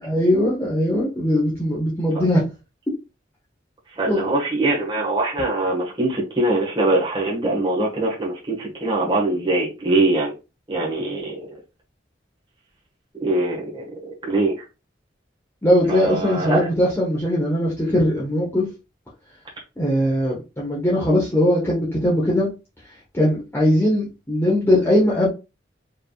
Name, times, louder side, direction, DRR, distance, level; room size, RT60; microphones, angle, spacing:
voice 1, 0.0-2.4 4.0-4.3 15.6-18.7 19.8-22.5 23.1-25.3, left 1 dB, 15° left, 1.1 m, -20 dB
voice 2, 3.9-10.3 10.7-11.4 13.2-14.6 15.9-16.7, right 2 dB, 25° right, 1.5 m, -22 dB
4.5 x 3.5 x 2.4 m
head